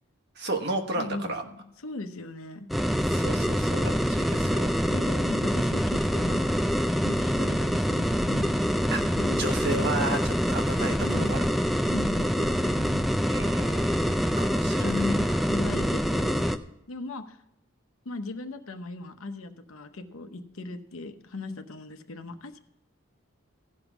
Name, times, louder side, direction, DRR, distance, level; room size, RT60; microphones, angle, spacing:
voice 1, 0.3-1.4 3.0-4.7 8.9-9.0 9.4-11.5 13.3-15.4, right 2 dB, 50° right, 3 dB, 1.2 m, -33 dB
voice 2, 1.0-1.3 1.8-2.7 4.9-6.6 7.0-9.7 10.8-11.4 11.9-13.0 14.8-16.5 16.9-17.4 18.0-22.6, left 2 dB, 90° left, 8 dB, 0.9 m, -37 dB
sound 1, 2.7-16.6, equal, ahead, 0.3 m, -25 dB
15.0 x 5.4 x 6.0 m, 0.82 s
head